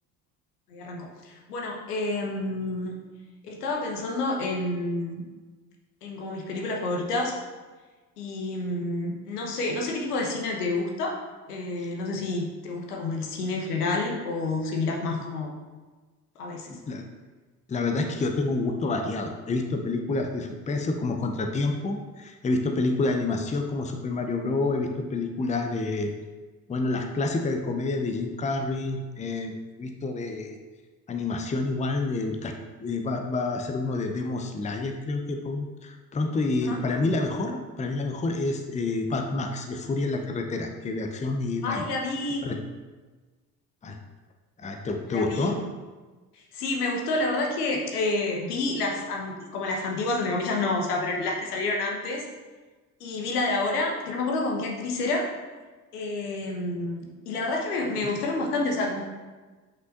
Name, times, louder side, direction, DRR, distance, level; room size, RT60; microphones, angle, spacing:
voice 1, 0.7-2.9 3.4-5.2 6.0-7.4 8.2-11.2 11.5-15.5 16.4-16.7 36.6-36.8 41.6-42.4 45.1-45.7 46.3-52.2 53.0-55.3 55.9-59.0, left 2 dB, 75° left, 0 dB, 1.1 m, -29 dB
voice 2, 16.7-17.0 17.7-26.1 26.7-29.5 29.8-30.6 31.1-32.5 32.8-41.9 42.4-42.6 43.8-44.0 44.6-45.6 58.0-58.1, left 3 dB, 15° left, 4 dB, 0.7 m, -28 dB
8.5 x 5.7 x 2.6 m, 1.3 s
figure-of-eight pair, 50°, 46 cm